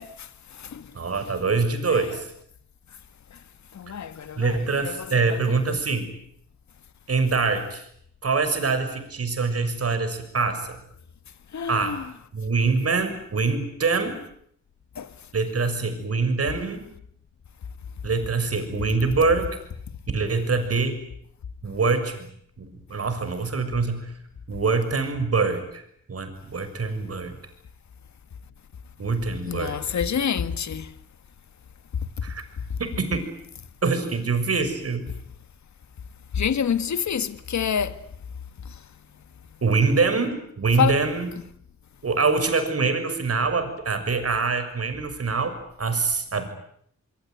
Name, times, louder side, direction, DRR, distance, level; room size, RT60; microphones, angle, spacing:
voice 1, 0.0-0.9 1.9-2.0 3.3-3.4 3.7-5.8 11.5-12.1 15.0-15.1 29.5-30.9 32.7-32.8 36.3-38.0 38.6-38.8 40.8-41.0, left 7 dB, 70° left, 1.9 m, -28 dB
voice 2, 0.9-2.3 4.4-6.1 7.1-7.8 8.2-10.8 11.7-12.0 12.3-14.2 15.3-16.9 18.0-19.5 20.1-21.0 21.6-22.3 22.6-24.1 24.5-25.8 26.1-27.4 29.0-29.8 32.2-32.4 32.8-33.3 33.8-35.1 39.6-41.3 42.0-46.5, right 4 dB, 55° right, 6.5 m, -24 dB
25.5 x 24.0 x 9.4 m
cardioid pair, 75°, 29 cm